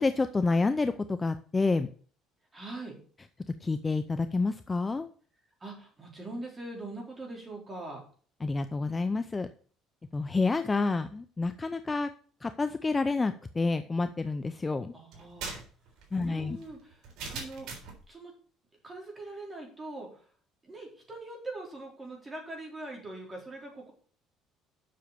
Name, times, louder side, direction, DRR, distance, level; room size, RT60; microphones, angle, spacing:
voice 1, 0.0-1.9 3.6-5.1 8.4-9.5 10.1-12.1 12.4-14.9 16.1-16.6, left 3 dB, 15° left, 10 dB, 0.5 m, -28 dB
voice 2, 2.5-3.0 5.6-8.0 14.9-15.5 16.2-17.7 18.1-18.3 18.8-20.3 20.6-23.9, right 2 dB, 20° right, -1 dB, 4.3 m, -42 dB
sound 1, 15.1-18.0, right 4 dB, 70° right, 3.6 m, -41 dB
7.7 x 6.4 x 6.9 m, 0.44 s
cardioid pair, 135°, 0 cm